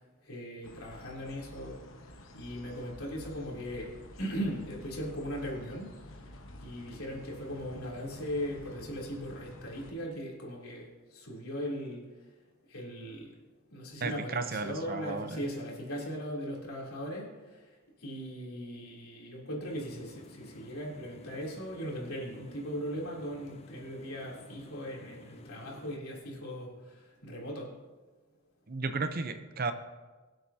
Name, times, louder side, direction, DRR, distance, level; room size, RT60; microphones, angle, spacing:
voice 1, 0.2-1.8 2.3-3.9 4.2-5.9 6.6-12.1 12.7-13.3 13.7-27.7, equal, 85° left, -3 dB, 3.3 m, -39 dB
sound 1, 0.6-9.9, left 1 dB, 65° left, 1.1 m, -50 dB
voice 2, 14.0-15.4 28.7-29.7, right 4 dB, 45° right, 9 dB, 0.7 m, -34 dB
sound 2, 19.6-26.0, left 2 dB, 30° left, 0.6 m, -53 dB
23.5 x 7.9 x 2.9 m, 1.2 s
head